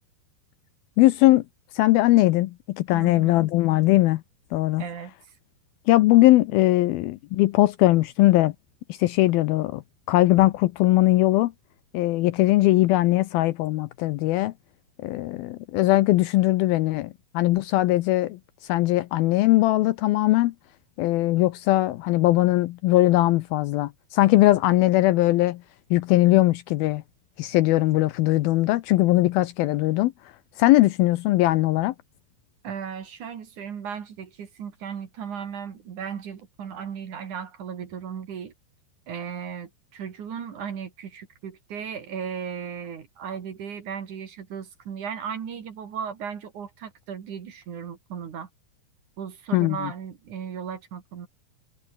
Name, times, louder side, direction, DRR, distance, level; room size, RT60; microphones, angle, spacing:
voice 1, 1.0-1.4 1.7-4.2 4.5-4.8 5.9-8.5 8.9-9.8 10.1-11.5 11.9-14.5 15.0-20.5 21.0-25.6 25.9-27.0 27.4-30.1 30.6-31.9 49.5-49.9, left 17 dB, 80° left, 2.4 m, -20 dB
voice 2, 2.9-3.5 4.8-5.3 32.6-38.5 39.1-48.5 49.2-51.3, right 7 dB, 55° right, 3.5 m, -36 dB
omnidirectional pair, 4.6 m